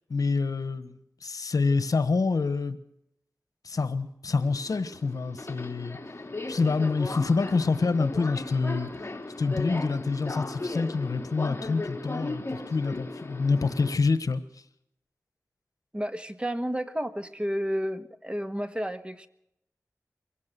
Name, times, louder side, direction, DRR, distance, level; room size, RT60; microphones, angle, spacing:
voice 1, 0.1-2.8 3.6-6.0 6.5-9.0 9.4-14.4, left 4 dB, 80° left, 12 dB, 1.2 m, -27 dB
Subway metro underground, 4.4-13.9, left 2 dB, 40° left, 2.9 m, -37 dB
voice 2, 15.9-19.3, equal, 15° right, 10 dB, 1.4 m, -31 dB
23.5 x 17.0 x 6.9 m, 0.79 s
wide cardioid pair, 70°, 6 cm